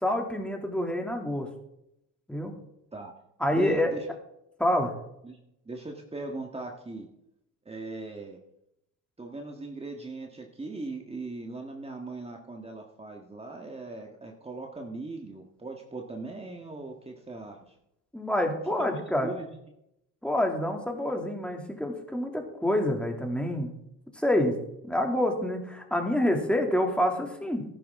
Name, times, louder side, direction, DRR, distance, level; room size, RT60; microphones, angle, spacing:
voice 1, 0.0-1.5 2.3-2.5 3.4-3.9 4.6-4.9 18.1-19.3 20.2-23.7 24.1-24.6 24.8-27.6, left 1 dB, 5° left, 2 dB, 2.6 m, -27 dB
voice 2, 3.5-4.1 5.2-5.4 5.6-7.1 7.6-8.4 9.2-17.7 18.8-19.5, right 2 dB, 15° right, 1 dB, 1.7 m, -39 dB
14.0 x 11.0 x 3.7 m, 0.81 s
cardioid pair, 85°, 34 cm